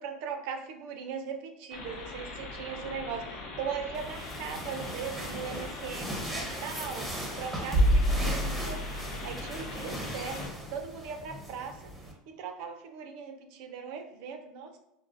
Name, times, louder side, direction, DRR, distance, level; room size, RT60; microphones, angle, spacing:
voice 1, 0.0-7.1 7.4-11.8 12.3-14.8, right 6 dB, 65° right, 6 dB, 0.5 m, -39 dB
sound 1, 1.7-10.5, left 2 dB, 65° left, 0.8 m, -42 dB
sound 2, 3.9-12.1, equal, 10° right, 0.7 m, -32 dB
4.6 x 2.1 x 2.5 m, 0.90 s
supercardioid pair, 145°, 0 cm